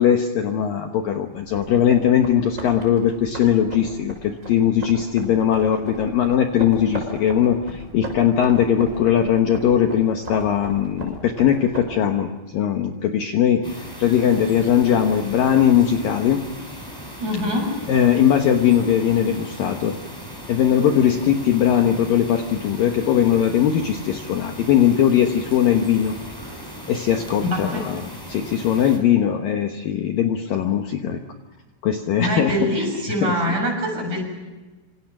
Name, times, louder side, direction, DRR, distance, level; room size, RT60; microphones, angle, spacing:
voice 1, 0.0-16.4 17.9-20.0 20.5-26.2 26.9-28.0 28.3-31.2 31.8-32.5 33.2-33.3, left 9 dB, 65° left, 5 dB, 2.4 m, -20 dB
sound 1, 1.3-11.9, right 1 dB, 15° right, 7.1 m, -37 dB
sound 2, 13.6-29.0, equal, 5° left, 5.3 m, -38 dB
voice 2, 17.2-17.7 27.4-27.9 32.2-34.2, equal, 40° right, 2 dB, 7.9 m, -24 dB
27.0 x 26.5 x 6.1 m, 1.2 s
omnidirectional pair, 5.2 m